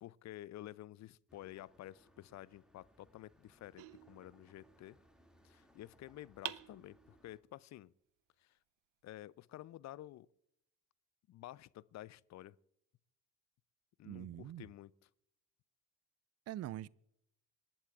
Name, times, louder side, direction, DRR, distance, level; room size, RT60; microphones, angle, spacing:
voice 1, 0.0-5.0 5.4-7.9 8.4-8.6 9.0-10.3 11.3-12.6 14.0-14.9, left 14 dB, 40° left, 0.5 m, -51 dB
sound 1, 1.3-7.4, equal, ahead, 2.4 m, -68 dB
sound 2, 3.8-4.9 6.4-7.5, right 17 dB, 60° right, 0.8 m, -48 dB
voice 2, 14.0-14.7 16.5-16.9, right 13 dB, 35° right, 0.5 m, -44 dB
26.0 x 12.0 x 2.5 m
hypercardioid pair, 50°, 46 cm